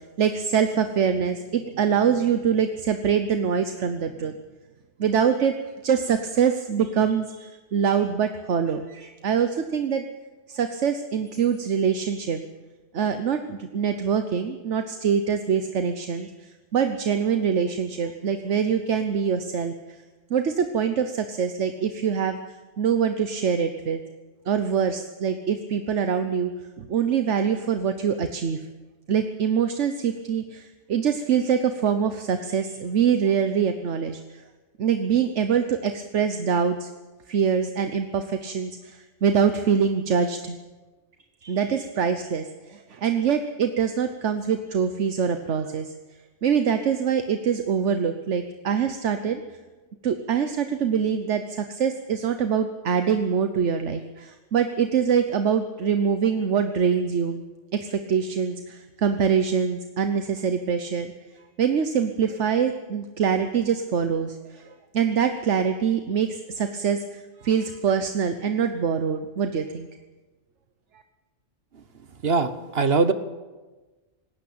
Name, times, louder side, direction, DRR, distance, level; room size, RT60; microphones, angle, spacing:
voice 1, 0.2-4.4 5.0-5.5 5.8-10.0 10.5-12.4 12.9-19.7 20.3-24.0 24.5-26.5 26.8-28.6 29.1-34.4 34.8-36.9 37.3-40.6 41.4-45.9 46.4-49.4 50.0-57.4 57.7-61.1 61.6-64.7 64.9-67.0 67.4-69.9, right 7 dB, 75° right, 8 dB, 1.3 m, -24 dB
voice 2, 72.2-73.1, right 4 dB, 55° right, 11 dB, 1.3 m, -21 dB
19.0 x 16.5 x 8.7 m, 1.2 s
omnidirectional pair, 1.2 m